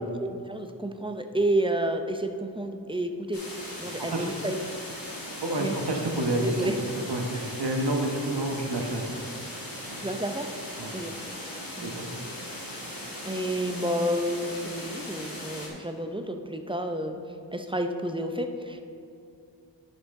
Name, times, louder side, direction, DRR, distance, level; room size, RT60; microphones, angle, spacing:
voice 1, 0.2-3.4 3.8-4.6 5.6-5.8 6.4-6.8 7.3-7.5 10.0-10.5 10.9-11.1 11.8-12.0 13.2-17.2 17.5-18.8, right 1 dB, 10° right, 6 dB, 0.5 m, -30 dB
sound 1, 3.3-15.7, left 1 dB, 50° left, 1.9 m, -39 dB
voice 2, 3.9-4.3 5.4-9.2 9.9-10.0 10.8-10.9 11.8-12.1, right 1 dB, 65° right, 2 dB, 1.2 m, -29 dB
9.9 x 6.3 x 3.7 m, 2.5 s
wide cardioid pair, 55°, 43 cm